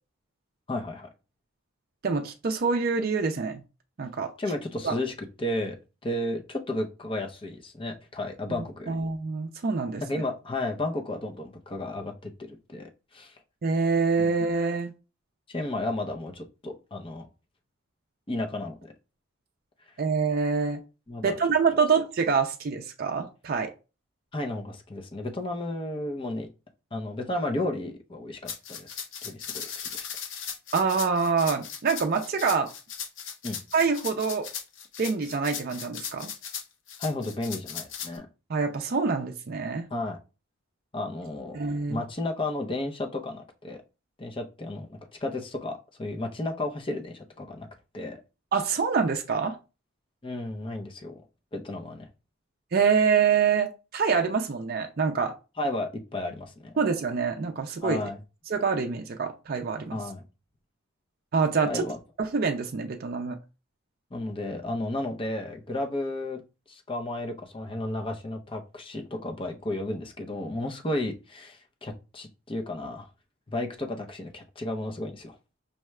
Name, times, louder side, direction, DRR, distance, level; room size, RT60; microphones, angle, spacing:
voice 1, 0.7-1.1 4.4-5.8 6.0-9.0 10.0-13.3 14.2-14.3 15.5-17.3 18.3-18.9 21.1-21.3 24.3-26.5 26.9-30.1 33.4-33.6 37.0-38.3 39.9-40.2 40.9-41.6 41.9-43.8 44.2-47.7 47.9-48.2 50.2-51.1 51.5-52.1 55.6-56.7 57.8-58.2 59.9-60.2 61.6-62.0 64.1-66.4 66.7-73.1 73.5-75.4, left 1 dB, 25° left, 3 dB, 0.6 m, -33 dB
voice 2, 2.0-3.6 4.0-4.3 4.8-5.0 8.9-10.0 13.6-14.9 20.0-20.8 21.2-23.7 30.7-32.7 33.7-34.5 35.0-36.3 38.5-39.9 41.5-42.0 48.5-49.6 52.7-55.3 56.8-58.0 58.5-60.0 61.3-61.9 62.2-63.4, right 5 dB, 45° right, 4 dB, 0.4 m, -26 dB
sound 1, 28.5-38.2, left 7 dB, 65° left, 0.7 m, -37 dB
5.5 x 2.3 x 3.1 m, 0.30 s
head